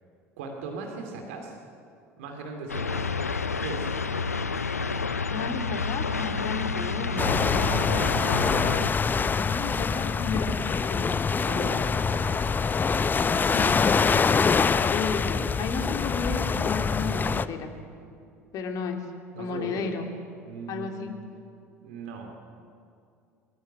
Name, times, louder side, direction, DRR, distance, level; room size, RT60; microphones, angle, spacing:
voice 1, 0.4-1.6 2.2-3.2 3.6-3.9 7.5-7.8 11.4-12.5 19.4-19.8 20.5-21.1 21.8-22.3, right 4 dB, 65° right, 3 dB, 2.5 m, -38 dB
sound 1, 2.7-8.9, left 4 dB, 85° left, 0.6 m, -29 dB
voice 2, 5.3-7.2 9.2-11.1 13.5-13.7 14.9-17.7 18.5-19.0 19.4-20.1 20.7-21.1, left 5 dB, 50° left, 4 dB, 2.9 m, -33 dB
sound 2, 7.2-17.5, left 5 dB, 25° left, 0.8 m, -25 dB
22.5 x 15.0 x 9.3 m, 2.5 s
figure-of-eight pair, 65°, 8 cm